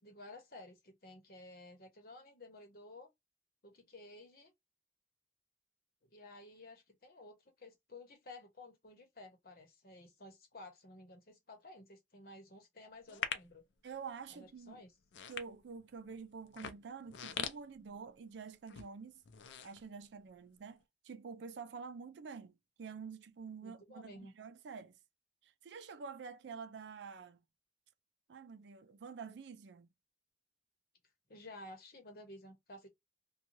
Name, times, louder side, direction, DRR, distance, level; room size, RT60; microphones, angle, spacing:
voice 1, 0.0-3.1 3.6-4.5 6.0-13.6 14.3-14.9 23.6-24.3 31.3-32.9, left 2 dB, 55° left, 0.9 m, -54 dB
sound 1, 13.1-13.6 14.2-14.5 15.0-16.0 16.5-18.4 18.6-18.9 19.2-20.4 20.8-20.9, left 7 dB, 90° left, 0.5 m, -42 dB
voice 2, 13.8-14.8 15.3-19.1 19.6-25.0 25.4-27.4 28.3-29.9, right 5 dB, 75° right, 0.4 m, -48 dB
2.7 x 2.3 x 2.9 m
head